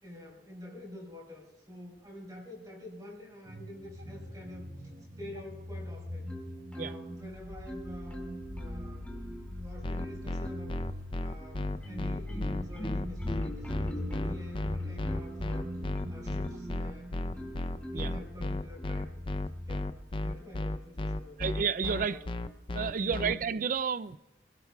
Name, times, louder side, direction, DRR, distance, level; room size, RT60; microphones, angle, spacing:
voice 1, 0.0-4.7 5.2-6.3 6.7-9.1 9.5-10.8 11.2-15.7 16.1-17.1 17.9-19.2 19.7-19.9 20.2-21.5 22.0-22.3 23.0-23.4, left 1 dB, 25° right, 4.3 m, -46 dB
sound 1, 3.4-20.0, left 1 dB, 70° right, 5.3 m, -42 dB
Marimba xylophone, 6.3-7.2 7.7-9.5 10.0-10.9 11.4-16.8 17.3-18.2 18.8-19.0, right 1 dB, 10° left, 2.3 m, -44 dB
sound 2, 9.8-23.3, left 2 dB, 30° left, 0.5 m, -33 dB
voice 2, 21.4-22.2 22.7-24.2, right 6 dB, 50° right, 0.4 m, -31 dB
23.5 x 17.0 x 2.3 m
head